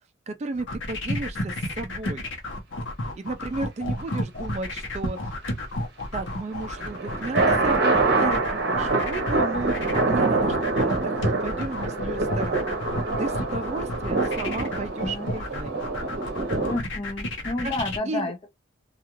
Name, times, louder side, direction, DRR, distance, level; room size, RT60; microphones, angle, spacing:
voice 1, 0.3-2.3 3.2-5.2 6.1-12.7 13.2-15.8 17.6-17.7 18.0-18.3, right 3 dB, 35° right, 0.3 m, -33 dB
sound 1, 0.5-18.0, left 1 dB, 65° left, 0.8 m, -31 dB
sound 2, 6.6-16.8, right 3 dB, 55° right, 0.8 m, -25 dB
voice 2, 16.7-18.5, left 2 dB, 30° left, 0.5 m, -30 dB
2.4 x 2.3 x 2.9 m
head